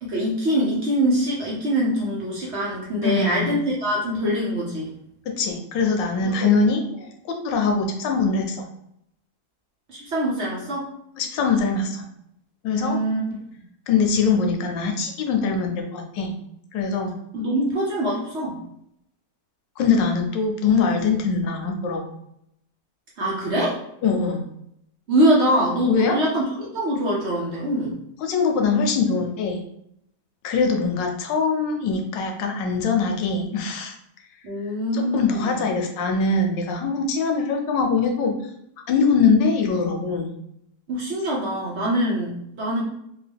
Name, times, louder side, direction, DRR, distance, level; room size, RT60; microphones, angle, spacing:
voice 1, 0.0-4.9 6.2-6.5 9.9-10.9 12.7-13.2 17.3-18.6 23.2-23.8 25.1-26.4 26.7-28.0 34.4-35.5 40.9-42.8, right 1 dB, 55° right, -5 dB, 0.8 m, -23 dB
voice 2, 3.0-3.6 5.4-6.8 7.2-8.7 11.2-12.0 12.6-13.0 13.9-16.3 16.7-17.2 19.8-22.0 24.0-24.4 25.9-26.2 28.2-29.6 30.4-34.0 34.9-38.3 38.9-40.3, left 5 dB, 90° left, 3 dB, 1.4 m, -22 dB
3.7 x 2.4 x 3.4 m, 0.76 s
omnidirectional pair, 1.9 m